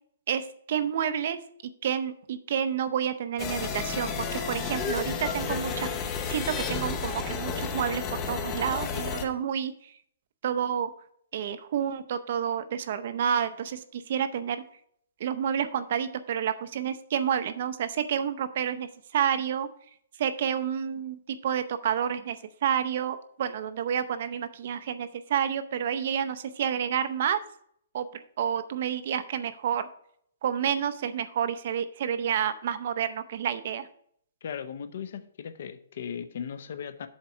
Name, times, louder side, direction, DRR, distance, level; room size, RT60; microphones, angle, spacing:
voice 1, 0.3-1.4 1.8-9.9 10.4-10.9 11.3-14.6 15.2-19.7 20.2-22.4 22.6-27.4 27.9-29.9 30.4-33.9, right 8 dB, 45° right, 12 dB, 0.6 m, -29 dB
sound 1, 3.4-9.2, left 5 dB, 15° left, 0.7 m, -32 dB
voice 2, 34.4-37.1, left 7 dB, 55° left, 11 dB, 0.7 m, -37 dB
7.3 x 4.4 x 6.1 m, 0.65 s
hypercardioid pair, 170°, 0 cm